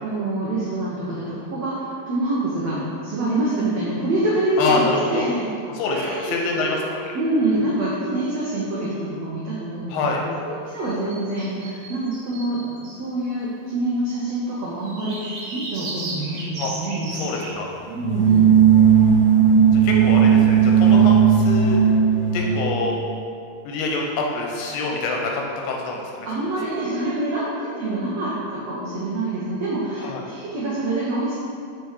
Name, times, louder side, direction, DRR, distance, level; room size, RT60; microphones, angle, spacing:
voice 1, 0.0-1.7 2.1-5.5 5.9-6.7 7.1-17.1 17.9-18.5 26.2-31.4, right 2 dB, 80° right, -7 dB, 1.5 m, -26 dB
voice 2, 4.6-5.3 5.8-7.0 9.9-10.2 16.6-16.7 17.1-17.7 19.8-21.8 22.3-23.0 23.7-26.3 30.0-30.2, left 3 dB, 90° left, 0 dB, 3.0 m, -26 dB
sound 1, 10.8-13.0 14.8-17.5, right 2 dB, 60° right, 1.8 m, -35 dB
sound 2, 18.0-22.7, right 7 dB, 45° left, 0.6 m, -15 dB
6.9 x 5.3 x 4.7 m, 2.4 s
omnidirectional pair, 4.5 m